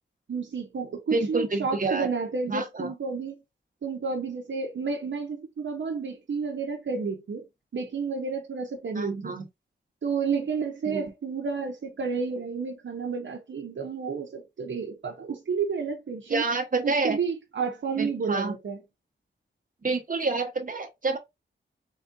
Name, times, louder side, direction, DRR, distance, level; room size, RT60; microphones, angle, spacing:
voice 1, 0.3-3.3 3.8-7.4 7.7-9.3 10.0-16.4 16.8-18.8, right 5 dB, 75° right, 0.9 m, -31 dB
voice 2, 1.1-2.1 2.5-2.9 8.9-9.5 10.8-11.0 16.3-17.2 18.0-18.5 19.8-21.2, right 3 dB, 45° right, 1.2 m, -28 dB
4.1 x 3.7 x 2.6 m
wide cardioid pair, 90°, 20 cm